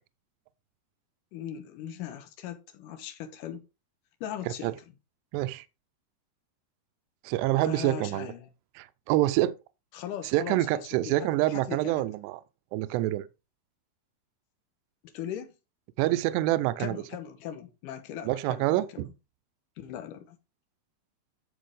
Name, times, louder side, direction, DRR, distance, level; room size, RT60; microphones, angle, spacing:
voice 1, 1.3-3.6 4.2-4.7 7.6-8.5 9.9-12.0 15.1-15.6 16.8-19.1 19.8-20.4, left 10 dB, 65° left, 2.2 m, -39 dB
voice 2, 5.3-5.7 7.2-8.3 8.8-9.5 10.3-12.4 12.7-13.2 16.0-17.0 18.2-19.1, right 16 dB, 80° right, 2.7 m, -26 dB
14.5 x 5.0 x 3.7 m
omnidirectional pair, 5.2 m